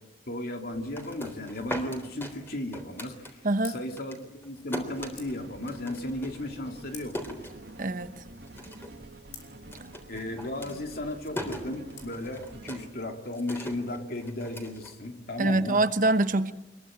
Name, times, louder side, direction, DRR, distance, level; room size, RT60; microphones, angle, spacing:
voice 1, 0.3-3.4 3.7-7.2 10.1-15.8, left 1 dB, 55° left, 4 dB, 2.7 m, -35 dB
sound 1, 0.8-3.7 4.0-8.1 8.4-9.0 9.3-15.6, left 1 dB, 15° left, 3.7 m, -40 dB
sound 2, 2.6-14.2, left 6 dB, 90° left, 5.7 m, -56 dB
voice 2, 3.4-3.7 7.8-8.2 15.4-16.5, right 2 dB, 50° right, 11 dB, 1.1 m, -24 dB
sound 3, 4.9-12.9, right 1 dB, 65° right, 2.3 m, -48 dB
25.0 x 22.0 x 8.9 m, 0.97 s
head